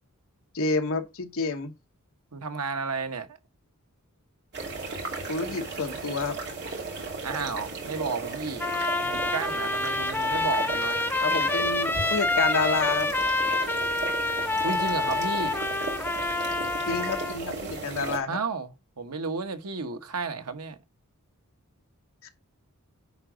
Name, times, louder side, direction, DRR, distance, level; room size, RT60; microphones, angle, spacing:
voice 1, 0.5-1.7 5.3-6.4 11.2-13.1 16.8-18.4 22.2-22.3, left 4 dB, 65° left, 1.3 m, -29 dB
voice 2, 2.3-3.4 7.2-8.7 9.1-11.0 14.6-15.6 18.3-20.8, right 4 dB, 90° right, 1.1 m, -32 dB
sound 1, 4.5-18.2, right 3 dB, 50° right, 2.7 m, -35 dB
Trumpet, 8.6-17.4, left 2 dB, 10° left, 0.6 m, -27 dB
9.9 x 3.9 x 5.0 m
head